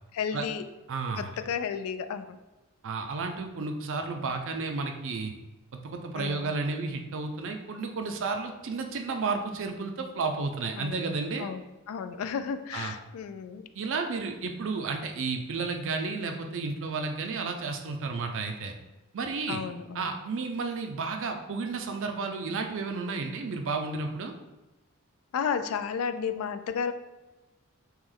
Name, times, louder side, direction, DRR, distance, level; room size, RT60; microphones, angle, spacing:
voice 1, 0.1-0.6 1.2-2.4 6.1-6.5 10.8-11.1 11.4-13.7 19.5-20.1 25.3-26.9, left 6 dB, 70° left, 11 dB, 0.3 m, -33 dB
voice 2, 0.9-1.3 2.8-5.3 5.7-11.5 12.7-12.9 13.7-18.7 19.1-19.6 19.9-24.3, right 4 dB, 60° right, 5 dB, 0.5 m, -32 dB
3.2 x 3.0 x 3.7 m, 1.1 s
head